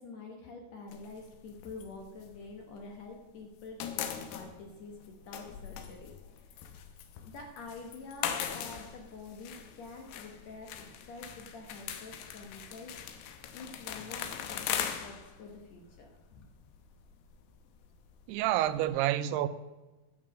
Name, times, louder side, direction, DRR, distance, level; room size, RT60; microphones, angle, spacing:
voice 1, 0.0-6.1 7.3-12.9 13.5-16.5, left 3 dB, 65° left, 1.7 m, -47 dB
sound 1, 0.9-3.2 3.4-18.9, left 9 dB, 85° left, 2.9 m, -41 dB
voice 2, 18.3-19.5, right 13 dB, 90° right, 2.6 m, -28 dB
11.0 x 7.4 x 6.3 m
omnidirectional pair, 4.5 m